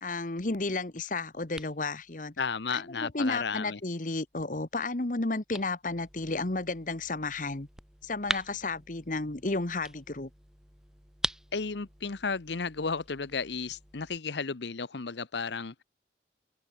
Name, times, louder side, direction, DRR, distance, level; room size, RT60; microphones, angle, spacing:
voice 1, 0.0-2.3 2.7-7.7 8.0-10.3, left 3 dB, 45° left, 1.3 m, -32 dB
sound 1, 0.7-14.2, right 1 dB, 5° right, 4.7 m, -43 dB
voice 2, 2.4-3.8 11.5-15.8, left 5 dB, 80° left, 0.9 m, -33 dB
open air
head